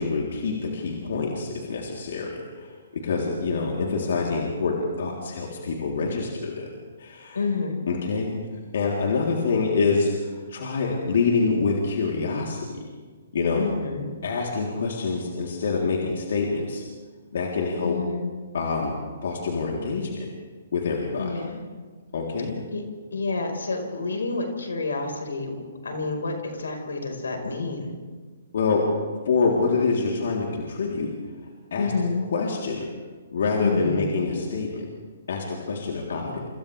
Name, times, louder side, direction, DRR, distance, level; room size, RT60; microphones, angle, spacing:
voice 1, 0.0-6.7 7.0-7.4 7.9-8.3 8.7-12.8 13.3-13.6 14.2-16.8 17.3-18.0 18.5-18.9 19.2-20.3 20.7-21.4 22.1-22.6 28.5-28.9 29.3-31.1 31.7-31.9 32.3-32.9 33.3-34.9 35.3-36.5, left 4 dB, 65° left, -2 dB, 3.6 m, -26 dB
voice 2, 7.3-7.8 13.5-14.1 17.8-18.3 21.2-21.6 22.7-22.8 23.1-27.9 31.8-32.3 33.6-34.1, left 3 dB, 85° left, 3 dB, 5.0 m, -29 dB
29.0 x 26.5 x 3.5 m, 1.4 s
hypercardioid pair, 140°, 0 cm